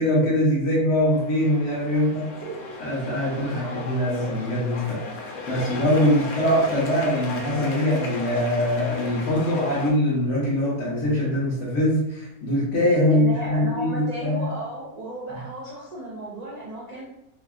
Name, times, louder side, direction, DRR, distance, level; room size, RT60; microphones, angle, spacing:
voice 1, 0.0-2.2 2.8-14.5 15.3-15.4, left 1 dB, 60° left, -7 dB, 1.1 m, -23 dB
sound 1, 1.0-9.9, left 3 dB, 85° left, 1.1 m, -36 dB
voice 2, 13.1-17.0, right 1 dB, 70° right, -6 dB, 0.4 m, -35 dB
2.8 x 2.5 x 2.3 m, 0.84 s
omnidirectional pair, 1.5 m